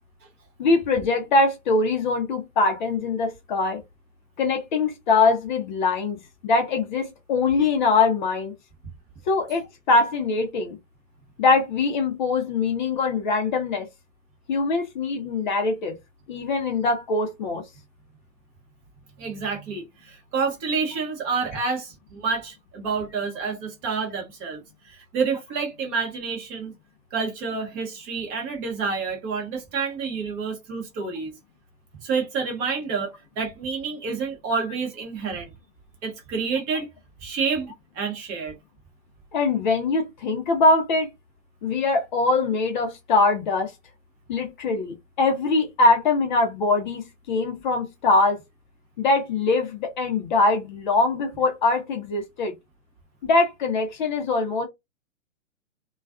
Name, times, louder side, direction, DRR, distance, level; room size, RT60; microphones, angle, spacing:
voice 1, 0.6-3.8 4.4-6.2 6.4-8.5 9.3-10.8 11.4-13.9 14.5-16.0 16.3-17.6 39.3-41.1 41.6-43.7 44.3-48.4 49.0-52.5 53.2-54.7, left 3 dB, 35° left, 0.6 m, -22 dB
voice 2, 19.2-26.7 27.1-31.4 32.0-35.5 36.0-36.9 37.2-38.5, right 5 dB, 20° right, 0.7 m, -29 dB
2.3 x 2.3 x 2.3 m
hypercardioid pair, 130°, 41 cm